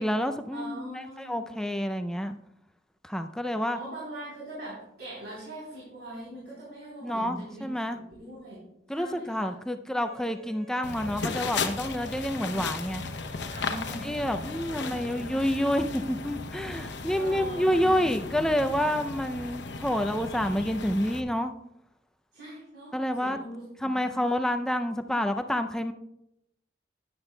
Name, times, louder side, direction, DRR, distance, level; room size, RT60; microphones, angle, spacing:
voice 1, 0.0-2.4 3.0-3.8 7.0-8.0 8.9-13.0 14.0-21.5 22.9-23.4 23.8-25.9, equal, 5° left, 7 dB, 0.4 m, -28 dB
voice 2, 0.5-1.5 3.7-7.7 8.2-8.6 8.9-9.6 13.5-14.1 14.6-15.3 17.1-18.1 22.3-24.2, right 1 dB, 65° right, -6 dB, 3.5 m, -42 dB
Bowed string instrument, 10.0-15.1, left 6 dB, 85° right, 1.9 m, -52 dB
sound 1, 10.8-21.2, left 4 dB, 85° left, 0.8 m, -36 dB
12.5 x 10.0 x 2.2 m, 0.84 s
head